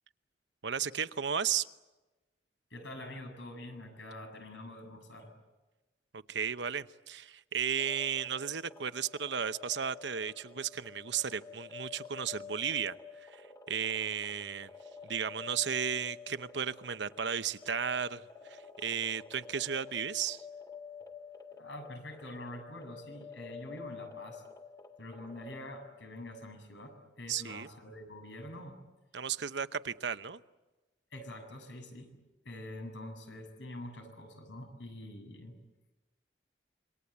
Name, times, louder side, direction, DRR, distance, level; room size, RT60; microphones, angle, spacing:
voice 1, 0.6-1.7 6.1-12.9 13.2-13.4 13.7-14.7 15.0-20.4 27.3-27.7 29.1-30.4, right 7 dB, 75° right, 12 dB, 0.9 m, -34 dB
voice 2, 2.7-5.3 21.6-24.4 25.0-28.8 31.1-32.1 32.4-35.6, left 1 dB, 90° left, 5 dB, 7.5 m, -45 dB
sound 1, 7.8-26.2, left 5 dB, 20° left, 2.0 m, -50 dB
27.5 x 24.0 x 8.3 m, 1.1 s
head